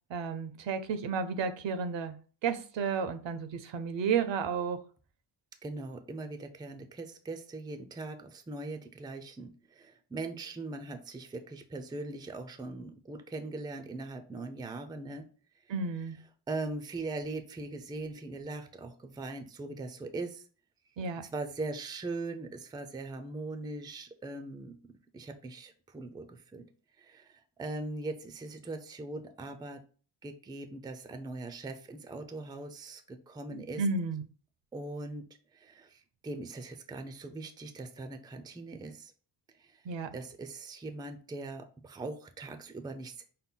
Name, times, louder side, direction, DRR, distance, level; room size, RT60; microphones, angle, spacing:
voice 1, 0.1-4.8 15.7-16.2 21.0-21.2 33.5-34.2 39.8-40.1, right 5 dB, 80° right, 0.7 m, -32 dB
voice 2, 5.6-15.3 16.5-20.5 21.2-26.7 27.0-29.8 30.2-33.8 34.7-39.1 39.5-39.8 40.1-43.3, right 2 dB, 10° right, 0.3 m, -40 dB
5.5 x 2.2 x 3.7 m
wide cardioid pair, 160°, 44 cm